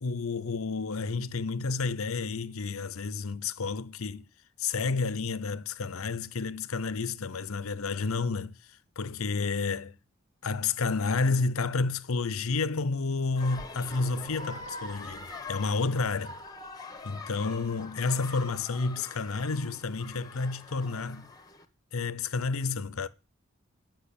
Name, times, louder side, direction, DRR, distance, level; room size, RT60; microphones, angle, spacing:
voice 1, 0.0-4.3 4.6-8.6 9.0-10.0 10.4-16.4 17.0-21.3 21.9-23.1, left 4 dB, 80° left, 0.7 m, -30 dB
sound 1, 13.3-21.6, left 3 dB, 20° left, 1.2 m, -44 dB
9.9 x 6.1 x 8.5 m
head